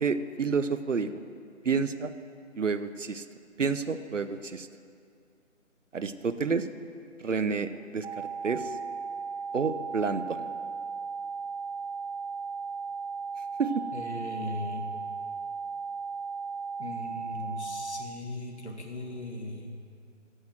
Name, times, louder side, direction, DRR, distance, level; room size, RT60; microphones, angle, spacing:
voice 1, 0.0-1.1 1.6-2.1 2.5-3.2 3.6-4.7 5.9-6.7 7.2-8.7 9.5-10.5 13.6-13.8, right 5 dB, 70° right, 12 dB, 0.8 m, -29 dB
sound 1, 8.0-18.0, right 5 dB, 45° right, 1.2 m, -36 dB
voice 2, 13.9-14.9 16.8-19.8, left 2 dB, 60° left, 2 dB, 2.0 m, -38 dB
15.0 x 6.4 x 7.7 m, 2.4 s
figure-of-eight pair, 160°, 39 cm